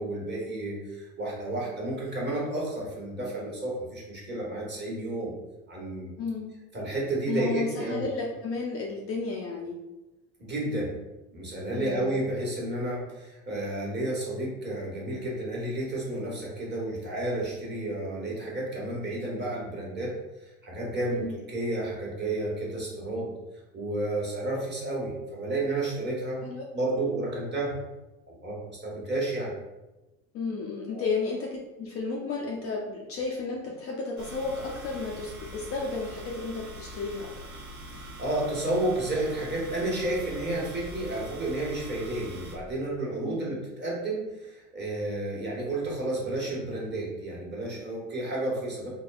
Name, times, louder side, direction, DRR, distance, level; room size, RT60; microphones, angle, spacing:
voice 1, 0.0-5.3 5.7-6.1 6.7-8.0 10.4-10.9 11.3-23.3 23.7-26.4 26.7-27.8 28.3-29.5 30.9-31.0 37.9-48.9, right 2 dB, 25° right, -4 dB, 1.3 m, -31 dB
voice 2, 6.2-6.5 7.3-9.8 11.7-12.2 21.1-21.3 26.4-26.6 30.3-37.6 43.2-43.6, left 4 dB, 35° left, -1 dB, 0.5 m, -33 dB
sound 1, 34.2-42.6, right 1 dB, 85° right, 0.7 m, -43 dB
3.5 x 2.2 x 2.3 m, 1.0 s
hypercardioid pair, 70°, 41 cm